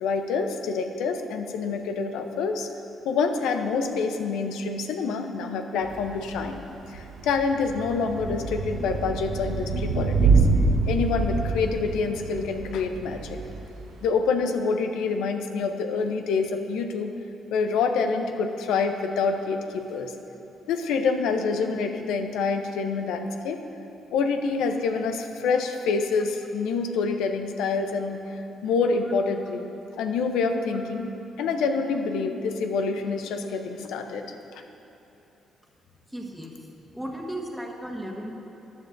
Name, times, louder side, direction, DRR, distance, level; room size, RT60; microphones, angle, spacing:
voice 1, 0.0-2.7 3.0-6.6 6.9-10.3 10.9-13.4 14.0-17.1 17.5-20.1 20.7-23.6 24.1-28.2 28.6-29.7 30.0-31.1 31.4-34.6, left 4 dB, 90° left, 6 dB, 0.7 m, -27 dB
Thunder / Rain, 5.8-14.1, right 3 dB, 75° right, 0.9 m, -26 dB
voice 2, 36.1-36.5 36.9-38.3, right 1 dB, ahead, -2 dB, 1.5 m, -35 dB
14.0 x 9.7 x 2.6 m, 3.0 s
cardioid pair, 90°, 0 cm